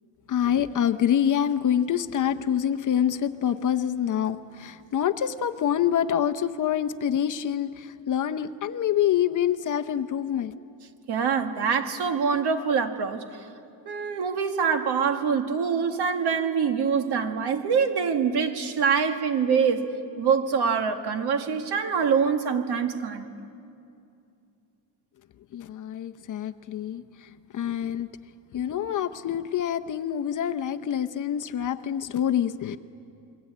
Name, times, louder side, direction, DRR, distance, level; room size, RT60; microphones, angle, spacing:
voice 1, 0.3-10.5 25.5-28.1 28.5-32.8, left 9 dB, 40° left, 8 dB, 0.7 m, -26 dB
voice 2, 11.1-13.2 13.9-23.3, right 6 dB, 55° right, 6 dB, 1.9 m, -25 dB
27.5 x 22.5 x 8.6 m, 2.5 s
cardioid pair, 145°, 47 cm